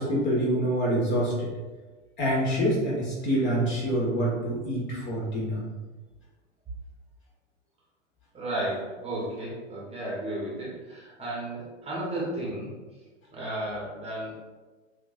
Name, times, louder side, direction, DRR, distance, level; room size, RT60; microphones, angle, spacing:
voice 1, 0.0-1.5 2.2-5.6, equal, 30° left, -4 dB, 1.4 m, -26 dB
voice 2, 8.3-12.7 13.3-14.4, right 1 dB, 15° right, -6 dB, 1.1 m, -33 dB
6.0 x 2.6 x 2.5 m, 1.3 s
hypercardioid pair, 110°, 39 cm